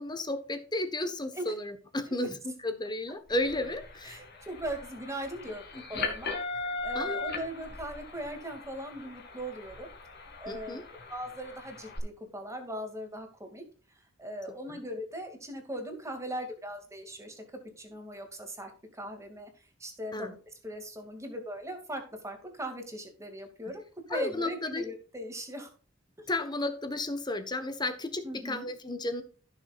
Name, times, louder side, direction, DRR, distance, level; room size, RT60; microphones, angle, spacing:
voice 1, 0.0-4.2 5.7-5.8 6.9-7.2 10.5-10.8 14.7-14.9 20.1-20.3 24.1-24.8 26.3-29.2, left 2 dB, 20° left, 9 dB, 1.2 m, -33 dB
sound 1, 3.3-12.0, left 3 dB, 55° left, 2.5 m, -39 dB
voice 2, 4.0-9.9 10.4-10.8 11.1-13.6 14.2-17.4 17.8-19.5 19.8-20.4 20.6-23.8 24.1-25.7 26.2-26.3 28.2-28.7, right 1 dB, 15° right, 4 dB, 2.3 m, -39 dB
16.0 x 6.6 x 2.4 m, 0.39 s
head